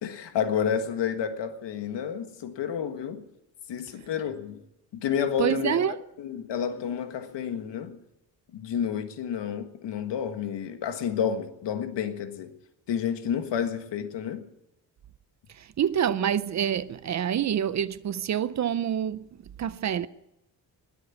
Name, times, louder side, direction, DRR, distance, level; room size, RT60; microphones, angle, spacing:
voice 1, 0.0-3.2 3.7-4.6 4.9-5.8 6.2-8.0 8.5-12.5 12.9-14.4, left 8 dB, 80° left, 1.6 m, -30 dB
voice 2, 5.4-6.0 15.5-20.1, right 9 dB, 45° right, 0.5 m, -27 dB
20.5 x 8.1 x 8.4 m
wide cardioid pair, 170°, 42 cm